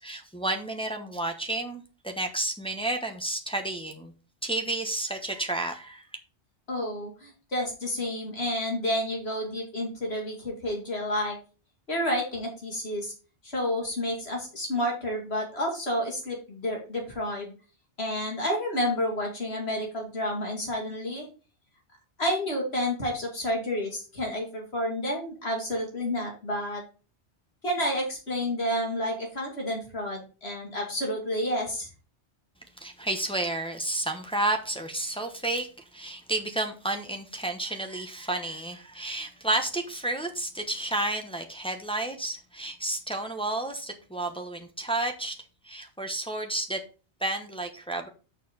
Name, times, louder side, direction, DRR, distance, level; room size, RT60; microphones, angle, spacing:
voice 1, 0.0-4.1 4.4-6.0 32.8-45.3 45.6-46.8 47.2-48.1, right 2 dB, 5° left, 3 dB, 0.9 m, -31 dB
voice 2, 6.7-11.4 11.9-13.1 13.4-17.5 18.0-21.3 22.2-26.8 27.6-31.9, left 1 dB, 65° left, 0 dB, 3.0 m, -30 dB
6.6 x 4.6 x 5.4 m, 0.35 s
omnidirectional pair, 1.2 m